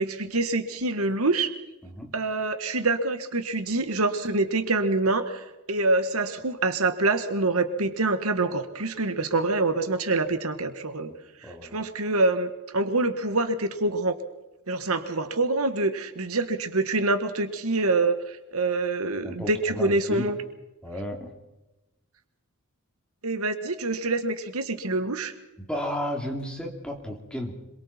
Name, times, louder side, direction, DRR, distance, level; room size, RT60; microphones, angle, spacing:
voice 1, 0.0-1.5 2.1-11.1 11.7-14.2 14.7-20.4 23.2-25.3, right 2 dB, 75° right, 8 dB, 1.7 m, -26 dB
voice 2, 1.8-2.1 11.4-11.8 19.2-20.3 20.8-21.3 25.6-27.5, equal, 5° left, 1 dB, 3.3 m, -33 dB
26.5 x 23.0 x 4.5 m, 0.99 s
head